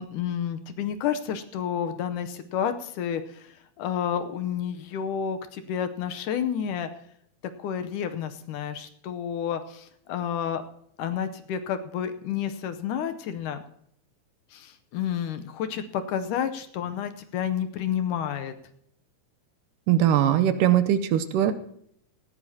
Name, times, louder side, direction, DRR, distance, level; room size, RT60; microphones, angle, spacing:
voice 1, 0.0-3.5 3.8-6.9 7.6-10.6 11.0-13.6 14.5-18.5, left 8 dB, 75° left, 9 dB, 2.2 m, -30 dB
voice 2, 19.9-21.5, right 11 dB, 80° right, 10 dB, 2.2 m, -21 dB
18.5 x 15.0 x 2.8 m, 0.69 s
omnidirectional pair, 3.9 m